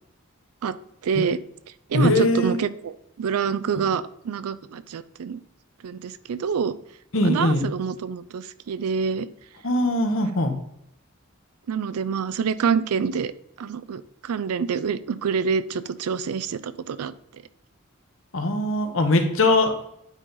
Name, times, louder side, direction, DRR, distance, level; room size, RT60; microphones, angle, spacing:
voice 1, 1.0-1.4 1.9-5.4 5.8-6.8 7.2-9.3 11.7-13.3 13.6-17.4, right 6 dB, 85° right, 15 dB, 0.4 m, -27 dB
voice 2, 1.9-2.6 7.1-7.7 9.6-10.5 18.3-19.8, left 2 dB, 65° left, 6 dB, 1.0 m, -21 dB
9.0 x 4.0 x 3.9 m, 0.75 s
head